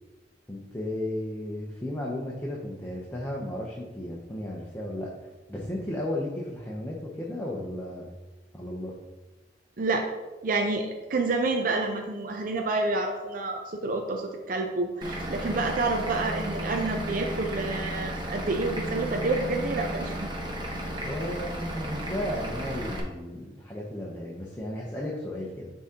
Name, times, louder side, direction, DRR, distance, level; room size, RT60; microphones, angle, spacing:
voice 1, 0.5-8.1 8.5-8.9 21.0-25.7, left 1 dB, 10° left, -4 dB, 0.7 m, -34 dB
voice 2, 10.4-20.3, right 3 dB, 50° right, 3 dB, 0.5 m, -28 dB
Vehicle / Engine, 15.0-23.0, right 1 dB, 25° right, 0.9 m, -33 dB
9.9 x 3.7 x 2.9 m, 1.2 s
head